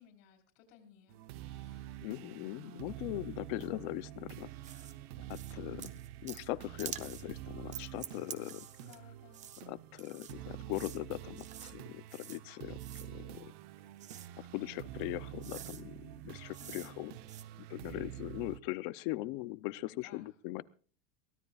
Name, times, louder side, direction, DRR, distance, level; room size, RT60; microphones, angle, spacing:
voice 1, 0.0-2.0 8.8-9.4 16.6-17.0 19.9-20.3, left 9 dB, 75° left, 5 dB, 4.6 m, -59 dB
sound 1, 1.1-18.6, right 13 dB, 50° right, 1.0 m, -47 dB
voice 2, 2.0-4.5 5.3-8.7 9.7-13.5 14.5-17.1 17.7-20.6, left 18 dB, 40° left, 17 dB, 0.6 m, -40 dB
sound 2, 4.6-4.9 5.3-5.5 5.8-6.5 6.8-7.2 7.7-9.0 9.3-9.6 10.0-10.3 10.7-11.0 11.4-11.7 12.1-12.4 12.8-13.1 14.0-14.3 15.0-15.1 15.4-15.8 16.5-16.9 17.2-17.4, right 10 dB, 20° right, 0.8 m, -47 dB
23.0 x 17.0 x 2.4 m, 0.41 s
supercardioid pair, 175°, 39 cm